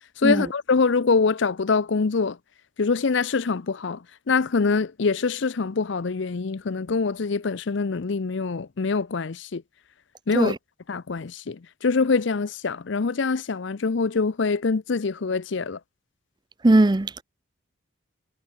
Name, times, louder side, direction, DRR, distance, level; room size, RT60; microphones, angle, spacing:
voice 1, 0.2-2.4 2.8-4.0 4.3-9.6 10.3-10.5 10.9-15.8, left 4 dB, 65° left, 0.6 m, -24 dB
voice 2, 16.6-17.2, right 2 dB, 20° right, 0.4 m, -19 dB
head